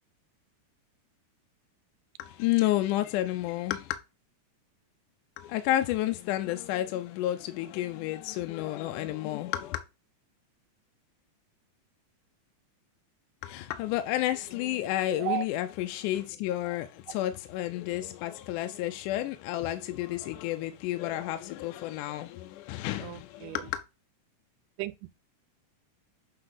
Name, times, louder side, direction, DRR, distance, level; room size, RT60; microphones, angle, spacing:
voice 1, 2.2-3.8 5.4-9.8 13.4-16.9 17.1-23.7, left 14 dB, 80° left, 2.0 m, -31 dB
voice 2, 15.0-15.5 23.0-23.7 24.8-25.1, right 15 dB, 90° right, 2.2 m, -35 dB
7.8 x 4.2 x 3.9 m
omnidirectional pair, 3.7 m